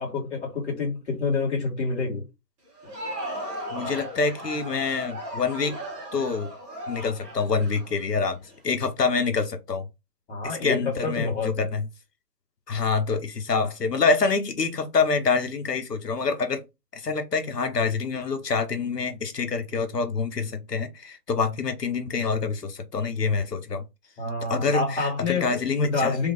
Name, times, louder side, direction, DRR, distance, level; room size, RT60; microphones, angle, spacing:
voice 1, 0.0-2.2 10.3-11.6 24.2-26.3, left 3 dB, 45° left, 2.4 m, -28 dB
Crowd, 2.7-8.6, right 1 dB, 10° right, 1.4 m, -36 dB
voice 2, 3.7-5.8 6.1-6.5 6.9-8.4 8.6-9.8 10.4-11.9 12.7-16.7 16.9-23.8 24.5-26.2, left 4 dB, 75° left, 1.3 m, -26 dB
3.6 x 3.6 x 3.5 m
figure-of-eight pair, 145°, 49 cm